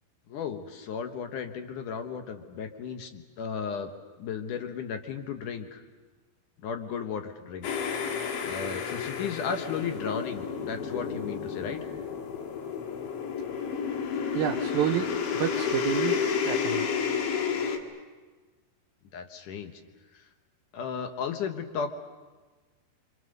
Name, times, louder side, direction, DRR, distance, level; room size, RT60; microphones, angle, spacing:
voice 1, 0.3-3.9 4.2-5.8 6.6-7.7 8.0-11.8 19.1-19.8 20.1-20.2 20.7-21.9, left 6 dB, 65° left, 6 dB, 2.3 m, -35 dB
Onslaught Of Noise, 7.6-17.8, left 6 dB, 85° left, 4.2 m, -31 dB
voice 2, 14.3-16.9, right 11 dB, 75° right, 2 dB, 2.3 m, -29 dB
27.5 x 26.5 x 6.7 m, 1.3 s
omnidirectional pair, 5.1 m